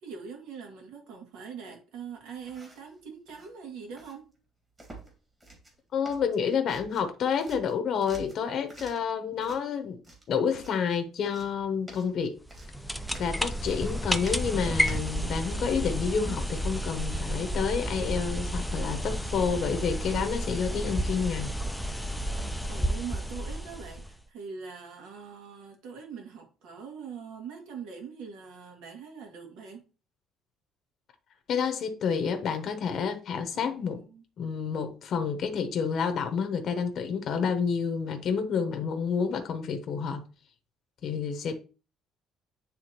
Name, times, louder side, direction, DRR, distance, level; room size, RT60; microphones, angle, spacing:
voice 1, 0.0-4.3 16.3-16.5 22.7-29.8 33.5-34.2, right 6 dB, 90° right, 2.0 m, -43 dB
sound 1, 2.4-2.9 3.3-3.5 4.0-4.2 4.8-5.1 5.4-5.8 6.1-7.1 7.4-9.1 9.4-9.6 10.0-10.8 11.2-15.7, right 2 dB, 20° right, 1.8 m, -49 dB
voice 2, 5.9-10.0 10.3-12.4 13.2-21.5 31.5-34.0 34.4-40.2 41.0-41.5, left 6 dB, 45° left, 0.7 m, -29 dB
sound 2, 12.4-24.2, equal, ahead, 0.3 m, -31 dB
9.3 x 3.5 x 2.9 m
cardioid pair, 160°, 0 cm